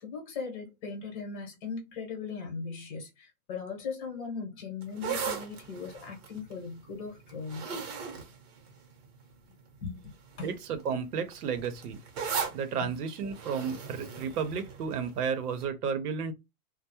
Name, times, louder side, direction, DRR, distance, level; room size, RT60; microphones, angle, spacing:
voice 1, 0.0-7.8 9.8-10.1 10.4-10.5 12.8-13.0, left 5 dB, 35° left, 0.9 m, -39 dB
sound 1, 4.8-9.3 10.0-10.3 10.6-15.2 15.6-15.7, right 6 dB, 45° right, 0.8 m, -38 dB
voice 2, 10.4-12.0 12.5-16.3, right 6 dB, 85° right, 0.7 m, -32 dB
2.2 x 2.0 x 2.8 m
hypercardioid pair, 155°, 45 cm